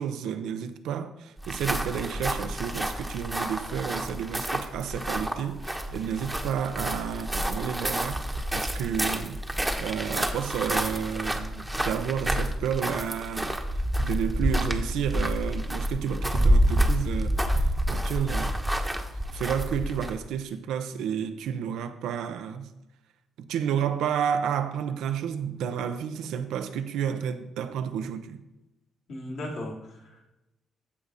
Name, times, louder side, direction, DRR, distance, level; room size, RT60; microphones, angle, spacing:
voice 1, 0.0-8.2 8.5-13.6 14.0-18.6 19.3-22.7 23.4-28.4, right 8 dB, 85° right, 0.7 m, -31 dB
sound 1, 1.4-20.3, equal, 5° right, 1.1 m, -28 dB
voice 2, 29.1-30.2, left 1 dB, 65° left, 3.2 m, -37 dB
14.5 x 4.9 x 4.1 m
cardioid pair, 90°, 0 cm